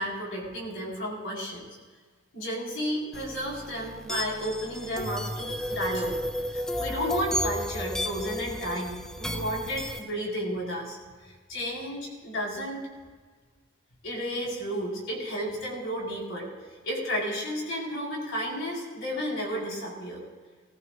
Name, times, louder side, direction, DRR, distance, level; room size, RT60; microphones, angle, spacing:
voice 1, 0.0-1.7 2.3-6.2 6.5-11.0 11.5-12.9 14.0-16.5 16.8-20.2, equal, 70° left, -2 dB, 4.7 m, -32 dB
sound 1, 3.1-10.0, equal, 5° left, 0.3 m, -33 dB
20.0 x 15.0 x 2.6 m, 1.4 s
head